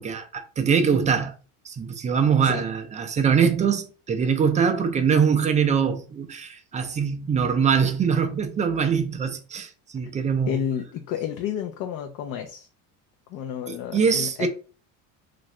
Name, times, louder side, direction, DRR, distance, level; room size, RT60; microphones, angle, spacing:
voice 1, 0.0-1.3 1.6-10.6 13.7-14.5, right 6 dB, 20° right, 0.3 m, -23 dB
voice 2, 10.5-12.7 13.3-14.5, left 9 dB, 50° left, 0.5 m, -31 dB
2.7 x 2.5 x 3.1 m
supercardioid pair, 110°, 41 cm